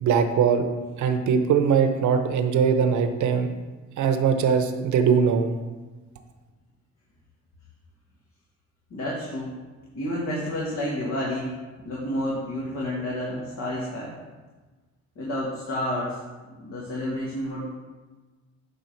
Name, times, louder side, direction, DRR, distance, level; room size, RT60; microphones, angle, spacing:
voice 1, 0.0-0.7 1.0-3.5 4.0-5.5, right 6 dB, 75° right, 7 dB, 0.9 m, -21 dB
voice 2, 8.9-9.5 9.9-11.5 11.8-14.1 15.2-16.1 16.6-17.7, left 1 dB, 65° left, -5 dB, 2.0 m, -30 dB
9.5 x 3.8 x 5.8 m, 1.3 s
cardioid pair, 90°, 30 cm